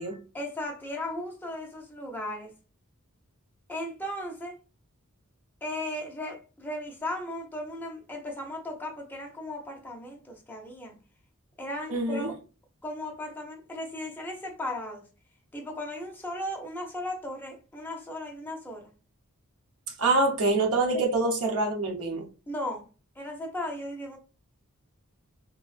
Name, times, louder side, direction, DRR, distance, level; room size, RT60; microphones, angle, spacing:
voice 1, 0.3-2.5 3.7-4.5 5.6-11.0 11.6-12.3 12.8-15.1 15.5-18.9 20.9-21.0 22.5-22.9 23.2-24.2, left 1 dB, 10° left, 0.6 m, -36 dB
voice 2, 11.9-12.3 20.0-22.3, right 2 dB, 80° right, 0.7 m, -25 dB
3.4 x 2.1 x 2.3 m
head